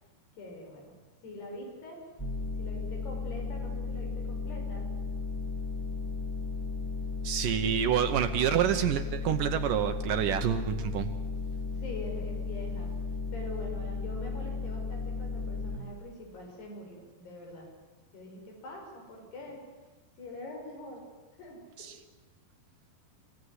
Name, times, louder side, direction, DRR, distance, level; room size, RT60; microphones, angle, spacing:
voice 1, 0.4-0.9 1.2-2.0 2.6-4.9 11.7-12.9 13.3-17.7 18.1-19.6 20.2-21.1 21.4-21.9, left 2 dB, 80° left, 1 dB, 7.7 m, -44 dB
sound 1, 2.2-15.8, left 4 dB, 20° left, 0.6 m, -35 dB
voice 2, 7.2-11.1 21.8-22.0, right 10 dB, 70° right, 8 dB, 2.2 m, -28 dB
27.0 x 16.5 x 9.7 m, 1.2 s
omnidirectional pair, 4.6 m